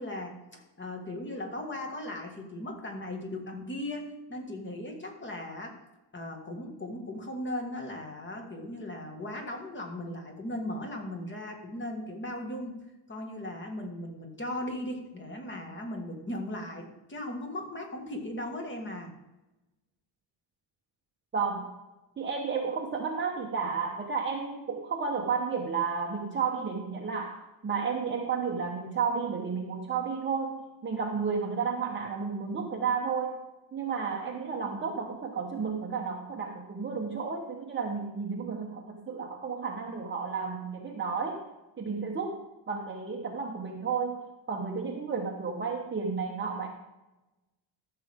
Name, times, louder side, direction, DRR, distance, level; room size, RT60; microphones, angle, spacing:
voice 1, 0.0-5.8 6.1-19.1, left 1 dB, 20° left, 2 dB, 1.8 m, -38 dB
voice 2, 21.3-21.7 22.2-33.4 33.7-41.4 41.8-42.4 42.7-46.7, right 5 dB, 25° right, 0 dB, 1.0 m, -32 dB
14.0 x 6.7 x 3.6 m, 1.0 s
cardioid pair, 140°, 50 cm